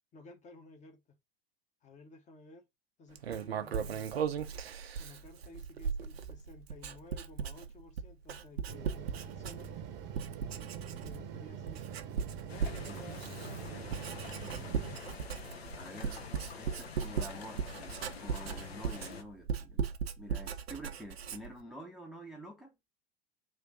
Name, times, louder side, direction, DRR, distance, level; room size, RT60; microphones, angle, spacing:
voice 1, 0.1-1.2 1.8-2.6 3.0-4.3 5.0-9.8 11.0-11.9 12.5-13.9, left 3 dB, 25° left, 0.9 m, -54 dB
Writing, 3.2-9.9 10.1-11.3 11.7-21.6, right 7 dB, 75° right, 0.6 m, -37 dB
sound 1, 8.7-15.0, right 8 dB, 35° right, 0.7 m, -44 dB
sound 2, 12.5-19.2, left 6 dB, 75° left, 0.7 m, -47 dB
voice 2, 14.3-14.8 15.7-16.2 16.6-19.8 20.2-22.7, right 1 dB, ahead, 0.6 m, -48 dB
3.4 x 2.6 x 3.7 m
figure-of-eight pair, 90°, 31 cm